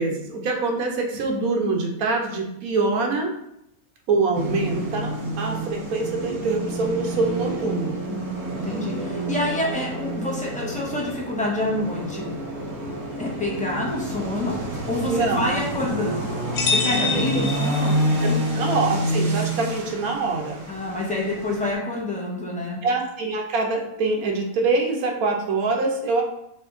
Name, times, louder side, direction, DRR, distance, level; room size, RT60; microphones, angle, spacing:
voice 1, 0.0-3.3 4.1-8.0 15.1-15.5 17.0-17.4 18.2-20.7 22.8-26.2, right 3 dB, 80° right, 2 dB, 1.2 m, -25 dB
sound 1, 4.3-21.7, right 1 dB, 55° right, 1.0 m, -28 dB
voice 2, 8.1-12.3 13.2-18.0 18.3-18.4 20.7-22.8, left 2 dB, 10° left, -4 dB, 0.5 m, -28 dB
sound 2, 16.5-18.4, left 4 dB, 90° left, 1.2 m, -26 dB
3.3 x 2.9 x 3.5 m, 0.78 s
omnidirectional pair, 1.5 m